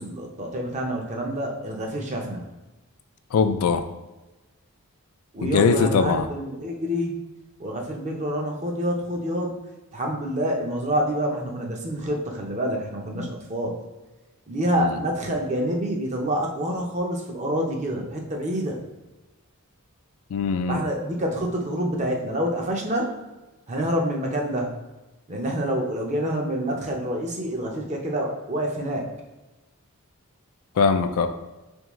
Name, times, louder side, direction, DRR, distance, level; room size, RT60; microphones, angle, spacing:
voice 1, 0.0-2.5 5.3-7.2 7.6-9.6 9.9-13.8 14.5-18.8 20.7-23.1 23.7-24.8 25.3-29.1, equal, 30° right, 1 dB, 0.6 m, -27 dB
voice 2, 3.3-3.8 5.4-6.3 13.2-13.3 14.8-14.9 20.3-20.8 30.8-31.3, left 5 dB, 70° left, 9 dB, 0.3 m, -21 dB
3.6 x 3.3 x 3.1 m, 1.1 s
head